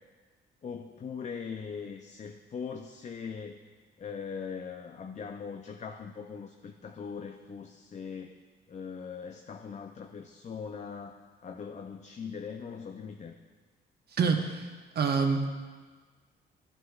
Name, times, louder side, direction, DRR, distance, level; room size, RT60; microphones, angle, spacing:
voice 1, 0.6-3.6 4.0-8.4 8.7-13.4, left 6 dB, 35° left, 5 dB, 0.5 m, -41 dB
voice 2, 14.2-15.5, right 5 dB, 55° right, 4 dB, 1.0 m, -27 dB
12.5 x 8.0 x 2.4 m, 1.4 s
cardioid pair, 90°, 20 cm